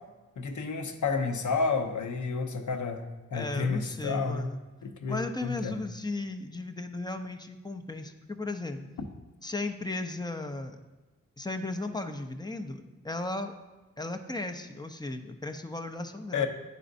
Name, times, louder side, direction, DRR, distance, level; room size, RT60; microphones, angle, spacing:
voice 1, 0.4-3.1 3.3-4.5 4.8-5.8 16.3-16.5, left 4 dB, 60° left, 4 dB, 0.7 m, -30 dB
voice 2, 3.3-4.6 5.1-8.9 9.4-10.8 11.4-13.5 14.0-16.5, left 2 dB, 15° left, 6 dB, 0.5 m, -35 dB
9.9 x 4.0 x 2.6 m, 1.2 s
cardioid pair, 45°, 33 cm